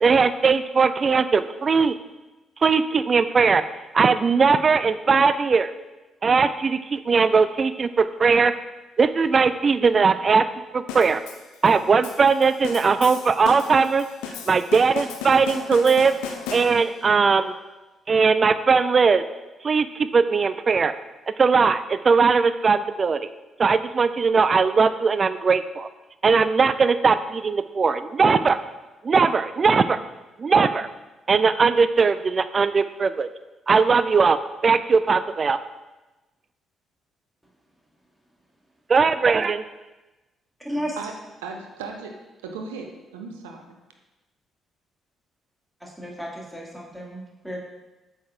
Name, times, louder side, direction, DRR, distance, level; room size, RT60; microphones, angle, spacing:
voice 1, 0.0-1.9 2.6-3.6 3.9-5.7 6.2-8.5 9.0-11.2 11.6-14.1 14.5-16.1 16.5-17.5 18.1-19.2 19.6-20.9 21.4-23.3 23.6-25.9 26.2-28.6 29.0-30.0 30.4-30.9 31.3-33.3 33.7-34.4 34.6-35.6 38.9-39.6, right 5 dB, 40° right, 13 dB, 0.3 m, -19 dB
sound 1, 10.9-17.1, left 6 dB, 70° left, 0.6 m, -36 dB
voice 2, 40.6-41.0 45.8-47.6, equal, ahead, -3 dB, 2.0 m, -33 dB
voice 3, 41.4-42.2 42.4-43.8, right 4 dB, 75° right, 3 dB, 0.6 m, -36 dB
8.3 x 6.5 x 2.4 m, 1.1 s
figure-of-eight pair, 40°, 0 cm